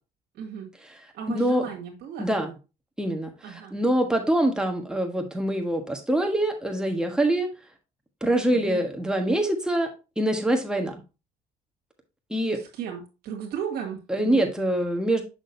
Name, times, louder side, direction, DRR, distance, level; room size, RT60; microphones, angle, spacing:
voice 1, 0.4-0.7 1.1-2.3 3.4-3.8 8.5-8.8 12.5-14.7, right 8 dB, 75° right, 1 dB, 1.9 m, -35 dB
voice 2, 1.3-1.6 2.2-2.6 3.0-7.5 8.2-9.9 10.2-11.0 12.3-12.6 14.1-15.2, right 1 dB, 5° right, 3 dB, 1.4 m, -24 dB
6.3 x 6.1 x 2.7 m, 0.30 s
cardioid pair, 110°, 17 cm